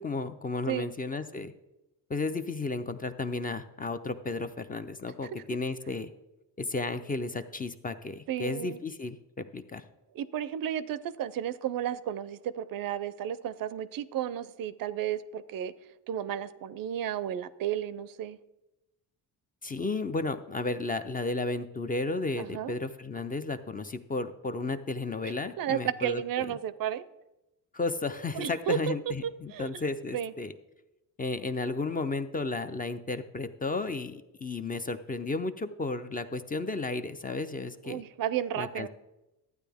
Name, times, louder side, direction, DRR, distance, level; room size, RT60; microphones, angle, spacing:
voice 1, 0.0-1.5 2.1-6.1 6.6-9.8 19.6-26.6 27.7-30.5 31.2-38.0 38.6-38.9, left 3 dB, 20° left, 9 dB, 0.4 m, -33 dB
voice 2, 8.3-8.8 10.2-15.7 16.1-18.4 22.4-22.7 25.6-27.1 28.4-28.8 29.5-29.8 30.1-30.3 37.8-38.9, right 10 dB, 60° right, 17 dB, 0.5 m, -33 dB
12.0 x 9.1 x 3.5 m, 0.96 s
cardioid pair, 110°, 40 cm